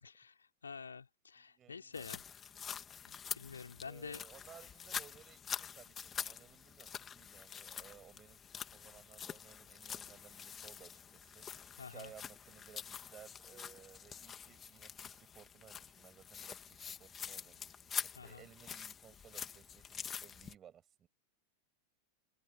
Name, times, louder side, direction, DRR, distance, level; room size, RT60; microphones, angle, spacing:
voice 1, 0.0-2.2 3.1-4.2 4.9-5.0 11.8-12.1 18.1-18.5, left 5 dB, 75° left, 3.1 m, -49 dB
voice 2, 1.4-2.1 3.9-11.5 11.9-21.1, right 9 dB, 25° right, 7.5 m, -59 dB
sound 1, 1.9-20.5, left 8 dB, 20° left, 2.8 m, -46 dB
figure-of-eight pair, 90°, 0 cm